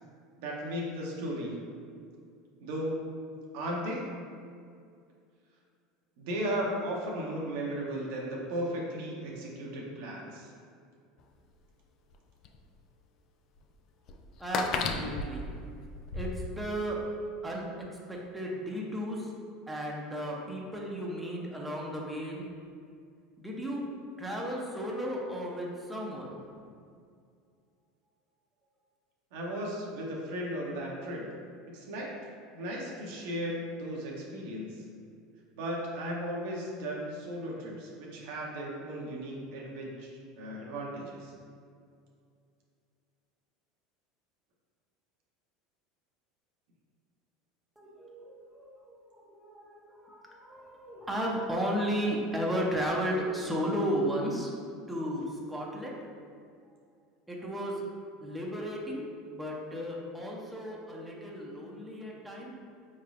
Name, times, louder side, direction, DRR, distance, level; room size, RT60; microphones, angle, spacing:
voice 1, 0.4-1.5 2.6-4.0 6.2-10.5 29.3-31.3 31.7-32.1 32.5-34.8 35.6-41.3, equal, 70° right, -2 dB, 0.7 m, -36 dB
sound 1, 11.2-11.3 12.1-12.2 12.5-12.6 13.6-13.7 14.1-16.3, left 4 dB, 50° left, 0.3 m, -33 dB
voice 2, 14.4-15.6 16.1-17.0 17.4-17.7 17.9-19.3 19.7-22.4 23.4-23.8 24.2-26.4 47.8-56.0 57.3-57.8 58.2-62.5, equal, 5° right, -3 dB, 0.7 m, -34 dB
4.5 x 3.1 x 2.5 m, 2.3 s
hypercardioid pair, 85°, 0 cm